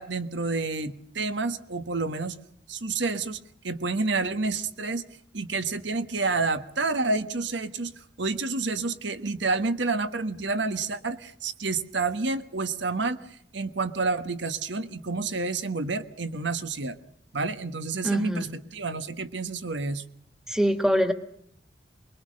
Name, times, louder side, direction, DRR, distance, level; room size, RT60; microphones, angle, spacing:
voice 1, 0.0-2.3 2.7-3.4 3.6-5.0 5.3-13.2 13.5-17.0 17.3-20.0, right 3 dB, 80° right, 11 dB, 1.4 m, -29 dB
voice 2, 18.0-18.5 20.5-21.1, equal, 5° right, 8 dB, 1.7 m, -23 dB
24.0 x 21.5 x 6.5 m, 0.67 s
head